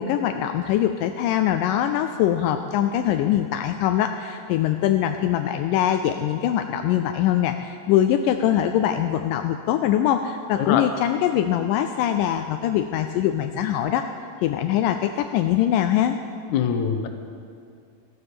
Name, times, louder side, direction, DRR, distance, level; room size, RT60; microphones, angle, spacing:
voice 1, 0.0-14.1 14.4-16.2, left 11 dB, 85° left, 7 dB, 1.9 m, -22 dB
voice 2, 16.5-17.1, left 8 dB, 65° left, 6 dB, 2.0 m, -23 dB
15.0 x 11.5 x 6.8 m, 2.3 s
omnidirectional pair, 4.3 m